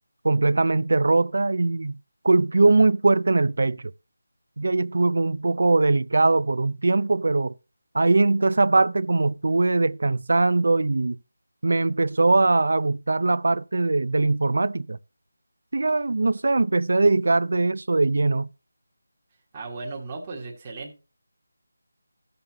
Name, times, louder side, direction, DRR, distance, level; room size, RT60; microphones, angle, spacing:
voice 1, 0.2-2.0 2.2-3.9 4.6-7.5 7.9-11.2 11.6-15.0 15.7-18.5, right 3 dB, 60° right, 0.5 m, -21 dB
voice 2, 19.5-21.0, right 3 dB, 20° right, 1.5 m, -36 dB
14.5 x 6.8 x 2.9 m
figure-of-eight pair, 175°, 0 cm